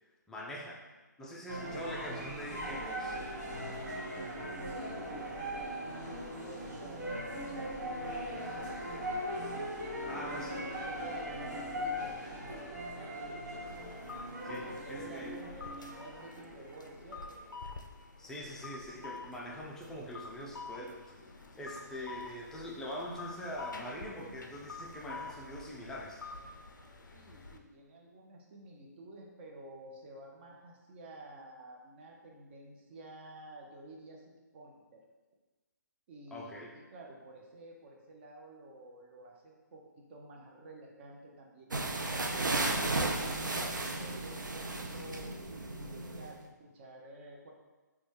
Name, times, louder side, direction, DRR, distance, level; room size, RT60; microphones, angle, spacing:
voice 1, 0.3-0.8 1.2-3.2 10.1-10.5 14.4-15.4 18.2-21.1 21.6-26.2 36.3-36.7, equal, 5° left, -3 dB, 0.3 m, -43 dB
sound 1, 1.5-17.6, equal, 70° right, 1.2 m, -40 dB
voice 2, 4.6-9.1 10.0-13.5 14.0-17.4 27.1-35.0 36.1-45.3 45.8-47.5, right 1 dB, 35° right, 0 dB, 0.6 m, -51 dB
sound 2, 13.7-27.6, left 3 dB, 85° left, 0.4 m, -48 dB
sound 3, 41.7-46.3, right 2 dB, 90° right, 0.4 m, -34 dB
4.0 x 2.3 x 3.2 m, 1.2 s
figure-of-eight pair, 140°, 10 cm